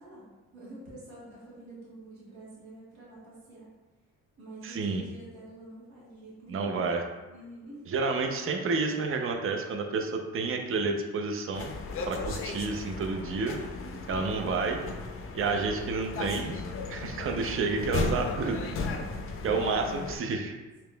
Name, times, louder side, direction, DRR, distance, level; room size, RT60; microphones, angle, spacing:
voice 1, 0.0-3.7 4.4-6.8 7.3-7.9 13.8-14.4 17.0-17.6 19.2-19.4, right 1 dB, 70° right, -8 dB, 1.4 m, -47 dB
voice 2, 4.6-5.0 6.5-7.0 7.9-11.7 12.1-13.6 14.1-14.9 15.3-16.6 16.9-18.7 19.4-20.6, right 4 dB, 45° right, 4 dB, 0.6 m, -30 dB
sound 1, 11.5-20.2, left 4 dB, 45° left, 0.5 m, -35 dB
5.0 x 2.9 x 2.2 m, 1.2 s
cardioid pair, 90°, 30 cm